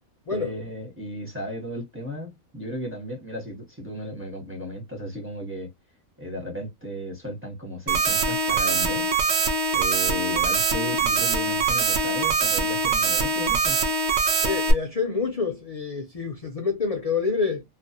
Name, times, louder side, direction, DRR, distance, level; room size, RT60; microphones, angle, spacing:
voice 1, 0.3-5.7 6.2-9.1 9.7-13.8, equal, 10° right, 0.7 m, -35 dB
sound 1, 7.9-14.7, right 4 dB, 65° right, 0.7 m, -23 dB
voice 2, 14.4-17.6, left 5 dB, 55° left, 0.4 m, -27 dB
2.4 x 2.1 x 2.7 m
omnidirectional pair, 1.5 m